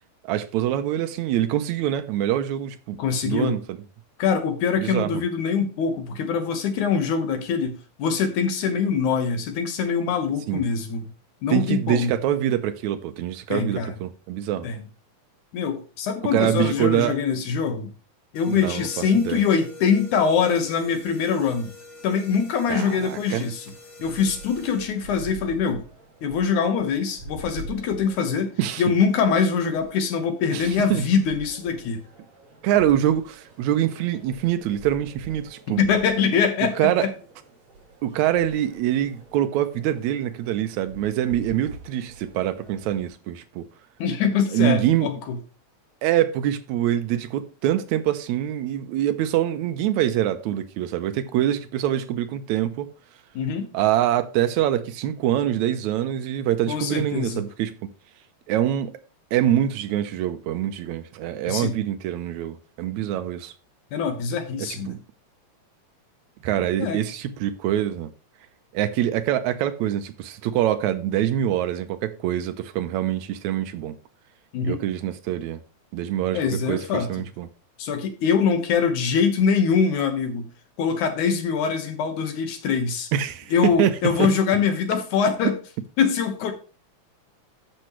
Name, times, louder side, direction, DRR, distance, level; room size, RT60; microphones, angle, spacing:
voice 1, 0.2-3.0 3.2-3.6 4.8-5.2 10.5-10.6 11.5-14.7 16.3-17.2 18.5-18.9 19.1-19.4 22.7-23.4 28.6-28.8 30.5-31.0 32.6-35.8 36.8-37.1 38.0-43.6 44.5-45.1 46.0-52.9 53.7-57.8 58.5-59.0 59.3-63.5 64.9-65.0 66.4-68.1 68.7-74.0 74.6-75.6 75.9-77.5 83.1-84.3, right 11 dB, 80° right, 2.0 m, -24 dB
voice 2, 3.0-3.6 4.2-11.1 11.4-12.1 13.5-13.9 14.6-14.8 15.5-17.9 18.3-21.7 22.0-23.6 24.0-25.9 26.2-32.0 35.8-37.1 44.0-45.4 53.4-53.7 56.7-57.4 61.5-61.8 63.9-64.9 66.8-67.0 74.5-74.8 76.3-77.1 77.8-80.5 80.8-83.1 83.5-85.5 86.0-86.5, left 6 dB, 85° left, 2.8 m, -23 dB
sound 1, 18.4-25.1, left 2 dB, 45° left, 2.5 m, -45 dB
sound 2, 24.0-43.1, right 3 dB, 60° right, 3.4 m, -45 dB
12.0 x 6.5 x 3.1 m
omnidirectional pair, 3.4 m